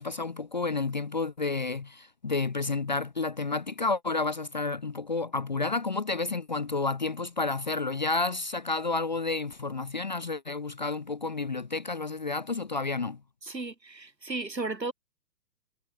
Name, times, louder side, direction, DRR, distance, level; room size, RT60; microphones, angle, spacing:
voice 1, 0.0-13.2, left 3 dB, 30° left, 0.5 m, -30 dB
voice 2, 13.4-14.9, right 3 dB, 80° right, 4.1 m, -34 dB
figure-of-eight pair, 130°, 49 cm